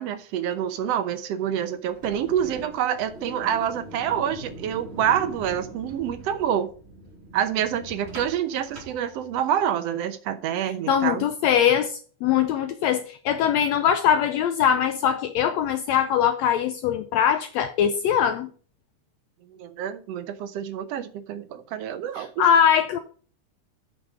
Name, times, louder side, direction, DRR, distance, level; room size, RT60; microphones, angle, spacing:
voice 1, 0.0-6.7 7.3-11.2 19.6-22.5, right 9 dB, 70° right, 1.7 m, -27 dB
sound 1, 1.8-9.7, right 1 dB, 20° right, 2.4 m, -42 dB
voice 2, 10.9-11.9 12.2-18.5 22.2-23.0, left 9 dB, 75° left, 1.6 m, -22 dB
8.9 x 5.7 x 5.0 m
omnidirectional pair, 3.6 m